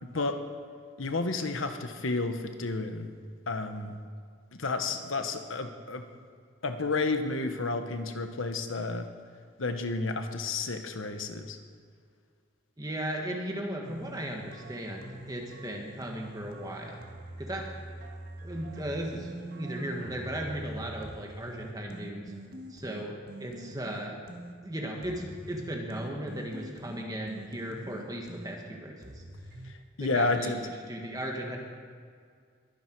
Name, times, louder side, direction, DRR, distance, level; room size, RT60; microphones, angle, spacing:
voice 1, 1.0-3.1 3.5-4.0 4.5-6.0 6.6-9.1 9.6-11.6 29.7-30.7, left 3 dB, 90° left, 7 dB, 1.2 m, -31 dB
voice 2, 12.8-17.0 17.4-17.6 18.4-22.2 22.7-24.2 24.6-29.2 30.0-30.5 30.9-31.6, right 1 dB, 20° right, 0 dB, 1.7 m, -36 dB
sound 1, 13.8-24.6 25.0-28.6 29.0-29.7, right 1 dB, 50° right, 1.6 m, -44 dB
22.0 x 10.5 x 4.7 m, 2.1 s
head